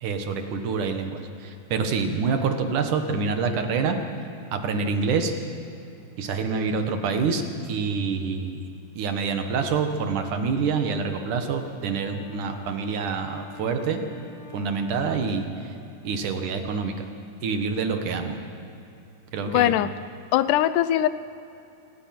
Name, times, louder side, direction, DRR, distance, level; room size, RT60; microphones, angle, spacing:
voice 1, 0.0-4.0 4.5-5.3 6.2-8.6 9.0-14.0 14.5-15.7 16.0-17.1 17.4-18.4 19.3-19.7, right 5 dB, 75° right, 6 dB, 3.1 m, -26 dB
Wind instrument woodwind instrument, 11.1-16.5, left 7 dB, 45° left, 2.8 m, -48 dB
voice 2, 19.5-19.9 20.3-21.1, left 13 dB, 85° left, 13 dB, 2.2 m, -21 dB
26.5 x 20.0 x 6.0 m, 2.8 s
omnidirectional pair, 3.6 m